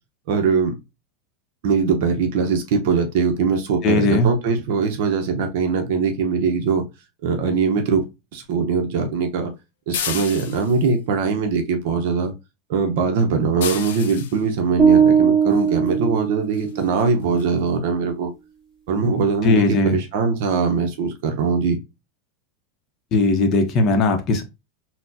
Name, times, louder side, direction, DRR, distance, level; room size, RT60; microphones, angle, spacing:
voice 1, 0.3-0.8 1.6-6.8 7.2-8.0 8.3-9.5 9.9-12.3 12.7-18.3 18.9-21.8, right 5 dB, 65° right, 0.6 m, -21 dB
voice 2, 3.8-4.3 19.4-20.0 23.1-24.4, left 3 dB, 35° left, 0.6 m, -18 dB
sound 1, 9.9-10.9 13.6-14.4 15.9-16.0 16.5-16.7 17.0-17.1 17.4-17.5, left 8 dB, 85° left, 0.6 m, -30 dB
sound 2, 14.8-17.0, right 7 dB, 20° right, 1.5 m, -18 dB
4.1 x 2.0 x 2.6 m
supercardioid pair, 145°, 0 cm